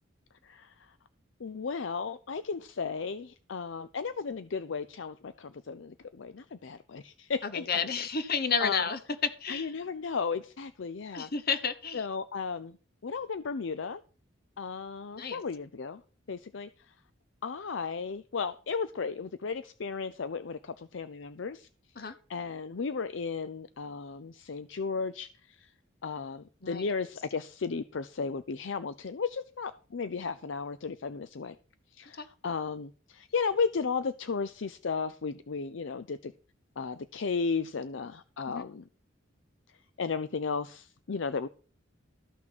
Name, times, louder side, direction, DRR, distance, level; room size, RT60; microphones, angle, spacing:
voice 1, 1.4-7.9 8.6-8.8 9.5-11.3 11.9-12.8 13.0-14.0 14.6-16.0 16.3-16.7 17.4-21.7 22.3-25.3 25.6-25.7 26.0-31.6 31.9-36.3 36.8-38.8 40.0-41.5, left 5 dB, 65° left, 0.5 m, -34 dB
voice 2, 7.4-9.0 9.4-9.7 11.1-12.1 15.1-15.4 22.0-22.1 26.6-26.9 32.2-32.3 38.5-38.6, left 5 dB, 50° left, 1.1 m, -31 dB
13.5 x 6.1 x 5.9 m
head